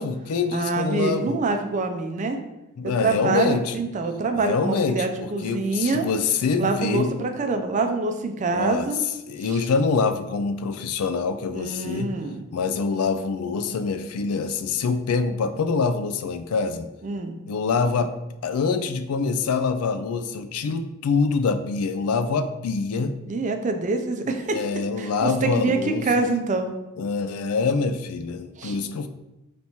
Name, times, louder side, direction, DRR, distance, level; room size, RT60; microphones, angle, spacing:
voice 1, 0.0-1.4 2.8-3.8 4.4-7.3 8.5-8.9 9.3-12.1 12.5-16.9 17.5-18.1 18.4-23.2 24.4-26.2 27.0-29.1, left 4 dB, 90° left, 10 dB, 0.4 m, -25 dB
voice 2, 0.5-2.4 2.8-6.1 6.6-9.0 9.4-9.7 11.5-12.5 17.0-17.4 23.3-24.6 25.0-26.7 28.6-28.8, right 3 dB, 35° right, 5 dB, 0.4 m, -25 dB
3.4 x 2.9 x 4.2 m, 0.95 s
head